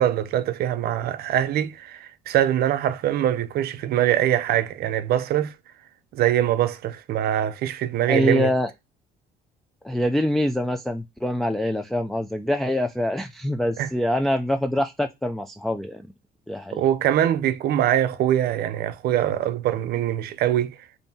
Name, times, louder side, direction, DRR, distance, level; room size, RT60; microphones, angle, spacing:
voice 1, 0.0-5.5 6.1-8.5 13.8-13.9 16.7-20.8, right 11 dB, 65° right, 0.6 m, -23 dB
voice 2, 8.1-8.7 9.8-16.1 16.5-16.8, left 1 dB, ahead, 0.4 m, -25 dB
5.3 x 2.7 x 2.7 m
cardioid pair, 110°, 17 cm